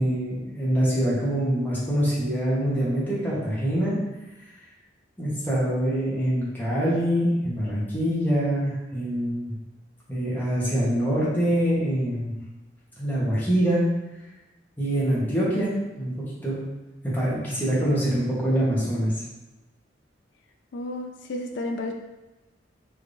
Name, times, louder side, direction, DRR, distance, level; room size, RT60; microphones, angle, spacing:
voice 1, 0.0-3.9 5.2-9.5 10.1-12.3 13.0-13.8 14.8-15.7 16.0-16.1 16.4-16.6 17.0-19.1, equal, 10° left, -8 dB, 1.1 m, -24 dB
voice 2, 20.7-21.9, left 1 dB, 70° left, 3 dB, 0.3 m, -31 dB
3.4 x 3.2 x 2.6 m, 1.1 s
head